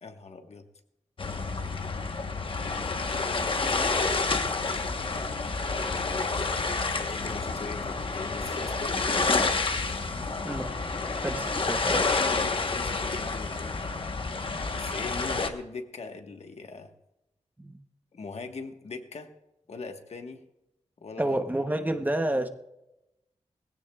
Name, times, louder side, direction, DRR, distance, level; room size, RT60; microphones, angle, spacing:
voice 1, 0.0-0.7 7.0-9.0 12.5-13.8 14.7-16.9 18.1-19.3 19.7-20.4 21.0-21.4, left 4 dB, 65° left, 5 dB, 1.3 m, -40 dB
sound 1, 1.2-15.5, left 3 dB, 45° left, 1.1 m, -29 dB
Laughter, 4.5-8.0 8.2-8.3 8.6-8.7, left 3 dB, 85° left, 5.1 m, -52 dB
voice 2, 10.4-11.0 11.2-12.2 17.6-17.8 21.2-22.5, right 1 dB, 15° right, 7 dB, 0.8 m, -30 dB
20.5 x 16.0 x 2.3 m, 0.92 s
wide cardioid pair, 125°, 12 cm